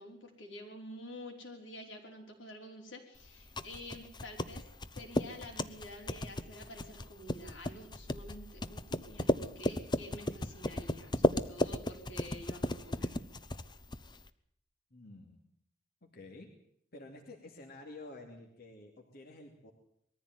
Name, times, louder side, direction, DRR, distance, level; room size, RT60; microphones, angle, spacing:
voice 1, 0.0-4.7 5.0-13.2, left 1 dB, 90° left, 1 dB, 5.4 m, -49 dB
sound 1, 3.2-14.3, left 1 dB, 25° left, 0.8 m, -35 dB
voice 2, 14.9-15.4 16.0-16.5 16.9-19.7, left 2 dB, 55° left, 1 dB, 2.8 m, -50 dB
21.0 x 14.5 x 9.3 m, 0.69 s
head